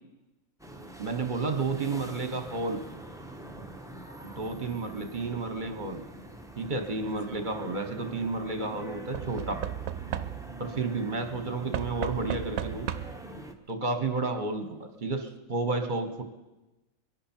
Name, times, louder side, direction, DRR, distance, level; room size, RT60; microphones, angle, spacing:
sound 1, 0.6-13.5, right 1 dB, 5° right, 0.8 m, -45 dB
voice 1, 1.0-2.8 3.6-3.7 4.2-6.0 6.6-9.6 10.6-12.9 13.7-16.2, right 3 dB, 40° right, 6 dB, 1.2 m, -31 dB
Knock / Wood, 6.9-7.4 9.1-10.7 11.7-13.3 14.4-14.5 14.7-14.8, right 11 dB, 90° right, 1.1 m, -35 dB
22.0 x 11.5 x 4.5 m, 1.1 s
omnidirectional pair, 1.4 m